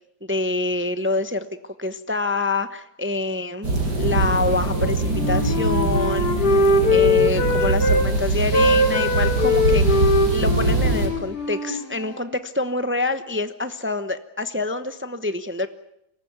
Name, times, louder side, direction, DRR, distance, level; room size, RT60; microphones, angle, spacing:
voice 1, 0.2-1.5 1.8-3.7 4.0-15.7, left 2 dB, 20° right, 10 dB, 0.3 m, -26 dB
sound 1, 3.6-11.1, right 3 dB, 55° right, 6.6 m, -22 dB
Wind instrument woodwind instrument, 4.7-8.1 8.4-12.3, left 2 dB, 55° left, 3.4 m, -21 dB
24.5 x 19.5 x 9.5 m, 0.82 s
omnidirectional pair, 2.1 m